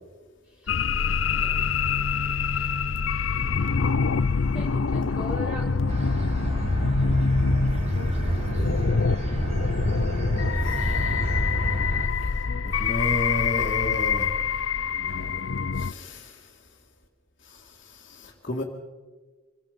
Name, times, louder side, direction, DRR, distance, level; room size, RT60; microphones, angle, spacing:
sound 1, 0.7-15.9, left 5 dB, 70° left, 0.6 m, -25 dB
voice 1, 4.5-5.7, left 1 dB, 5° right, 6.4 m, -40 dB
sound 2, 5.9-12.1, right 1 dB, 30° right, 2.8 m, -28 dB
voice 2, 7.7-8.6 10.6-10.9 12.2-14.3 15.7-16.5 17.4-18.6, left 1 dB, 45° left, 2.3 m, -34 dB
26.0 x 23.5 x 5.3 m
head